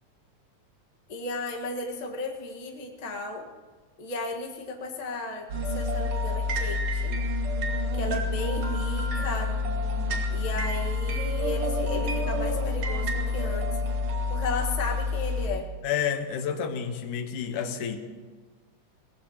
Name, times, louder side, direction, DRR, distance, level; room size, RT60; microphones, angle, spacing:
voice 1, 1.1-3.5 4.0-7.2 7.9-9.5 10.3-13.7 14.3-15.7, left 2 dB, 35° left, 0 dB, 0.6 m, -34 dB
sound 1, 5.5-15.5, left 2 dB, 55° right, 2.4 m, -28 dB
voice 2, 15.8-18.0, left 8 dB, 85° left, 7 dB, 2.6 m, -30 dB
22.5 x 18.0 x 3.0 m, 1.4 s
omnidirectional pair, 3.5 m